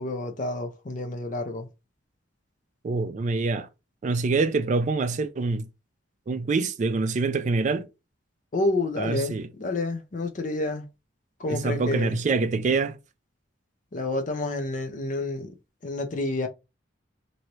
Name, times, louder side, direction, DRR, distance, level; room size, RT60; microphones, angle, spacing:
voice 1, 0.0-1.7 8.5-10.8 11.4-12.2 13.9-15.5 15.8-16.5, left 2 dB, 40° left, 0.6 m, -29 dB
voice 2, 2.8-3.7 4.0-5.7 6.3-7.9 9.0-9.5 11.5-13.0, right 3 dB, 40° right, 0.3 m, -25 dB
3.1 x 2.6 x 2.9 m
head